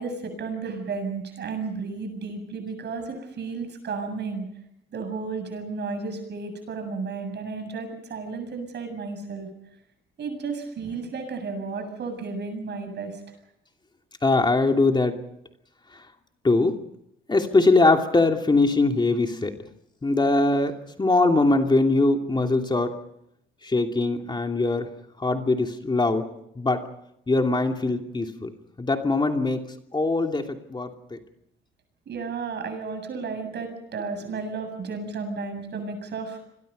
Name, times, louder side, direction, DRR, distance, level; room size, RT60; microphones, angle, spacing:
voice 1, 0.0-4.5 4.9-9.5 10.2-13.2 32.1-36.4, right 4 dB, 60° right, 7 dB, 7.6 m, -33 dB
voice 2, 14.2-15.2 16.4-16.8 17.3-19.5 20.0-22.9 23.6-24.9 25.2-26.3 26.6-26.8 27.3-28.5 28.8-29.6 29.9-31.2, left 2 dB, 25° left, 4 dB, 2.8 m, -22 dB
28.0 x 22.5 x 5.5 m, 0.78 s
cardioid pair, 90°, 20 cm